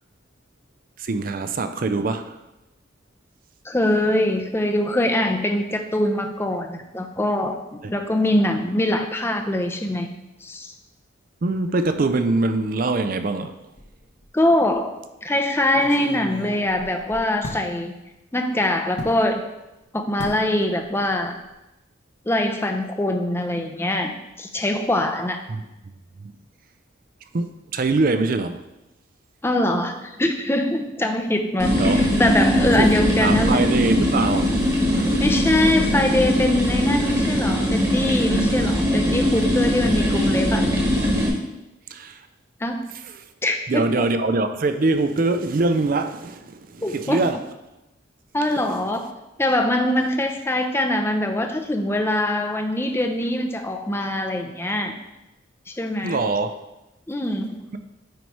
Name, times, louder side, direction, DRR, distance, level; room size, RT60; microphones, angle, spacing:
voice 1, 1.0-2.4 11.4-13.5 25.5-25.9 26.2-26.3 27.3-28.6 31.8-32.0 32.8-32.9 33.2-34.6 34.9-35.2 41.9-42.3 42.9-43.3 43.7-47.4 48.5-48.7 56.0-56.5, right 3 dB, 45° right, 0.4 m, -23 dB
voice 2, 3.6-7.6 7.9-10.1 10.4-10.7 14.3-17.9 18.3-19.4 19.9-21.4 22.3-25.4 29.4-33.7 35.2-40.7 42.6-42.8 43.4-44.1 46.8-47.3 48.3-49.1 49.4-54.9 55.7-56.2 57.1-57.6, left 1 dB, 10° left, 0.5 m, -23 dB
sound 1, 13.8-14.3 14.7-14.8 15.6-17.7 19.0-19.2 20.2-20.5 20.8-21.1 21.4-21.5, left 1 dB, 60° left, 1.1 m, -36 dB
sound 2, 31.6-41.3, equal, 20° right, 1.3 m, -21 dB
9.4 x 3.1 x 4.6 m
head